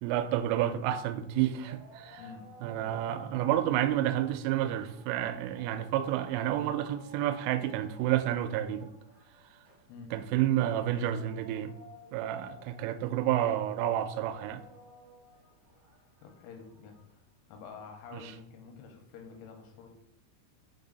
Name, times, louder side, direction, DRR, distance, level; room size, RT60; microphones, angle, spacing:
voice 1, 0.0-2.3 2.6-8.9 10.1-11.7 12.1-14.6 18.1-18.3, right 12 dB, 90° right, 3.1 m, -30 dB
sound 1, 0.8-17.2, right 1 dB, 50° right, 2.6 m, -54 dB
voice 2, 16.2-17.2 17.5-19.9, left 5 dB, 85° left, 3.3 m, -48 dB
6.1 x 5.1 x 3.9 m
omnidirectional pair, 5.7 m